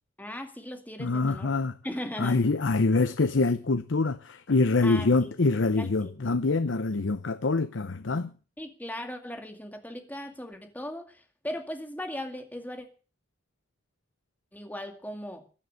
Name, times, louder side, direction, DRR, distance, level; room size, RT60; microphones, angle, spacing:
voice 1, 0.2-1.5 1.8-2.4 4.8-5.3 5.8-6.1 8.6-12.9 14.5-15.5, left 1 dB, 10° left, 2.1 m, -38 dB
voice 2, 1.0-1.8 2.2-8.3, left 3 dB, 70° left, 0.7 m, -25 dB
16.0 x 11.0 x 6.4 m
head